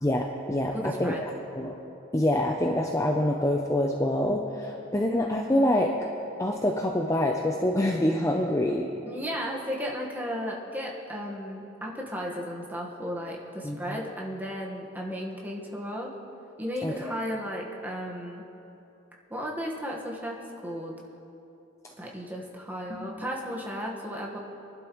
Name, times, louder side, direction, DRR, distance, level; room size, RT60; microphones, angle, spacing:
voice 1, 0.0-1.3 1.6-1.7 2.1-6.1 6.4-8.9 13.6-14.0 16.8-16.9 22.9-23.1, left 1 dB, 15° left, 1 dB, 0.6 m, -26 dB
voice 2, 0.7-1.2 9.1-16.1 16.6-18.5 19.3-20.9 22.0-24.4, equal, 10° right, -2 dB, 1.4 m, -34 dB
24.0 x 11.5 x 3.1 m, 2.9 s
head